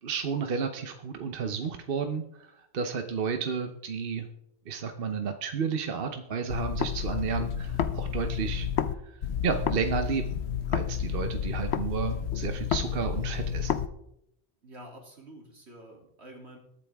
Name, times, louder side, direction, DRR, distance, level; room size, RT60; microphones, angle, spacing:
voice 1, 0.0-4.3 4.7-8.7 9.0-10.3 10.7-13.7, right 6 dB, 60° right, 6 dB, 1.0 m, -32 dB
sound 1, 6.5-8.9 9.2-13.9, left 8 dB, 80° left, 1.0 m, -30 dB
voice 2, 14.6-16.6, right 1 dB, 85° right, 0 dB, 3.2 m, -48 dB
21.0 x 8.6 x 3.5 m, 0.79 s
omnidirectional pair, 1.1 m